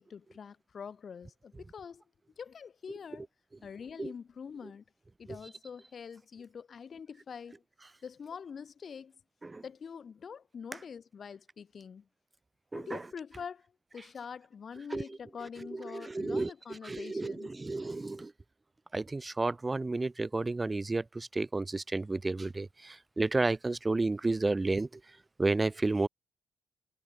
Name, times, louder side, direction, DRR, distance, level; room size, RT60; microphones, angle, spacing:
voice 1, 0.0-2.0 2.4-3.2 3.6-4.8 5.2-7.6 8.0-9.1 9.6-12.1 12.7-13.7 13.9-17.6, left 6 dB, 45° left, 4.1 m, -45 dB
voice 2, 16.0-16.5 16.9-17.3 17.6-18.3 18.9-24.9 25.4-26.1, right 3 dB, 20° right, 1.4 m, -31 dB
cardioid pair, 90°, 0 cm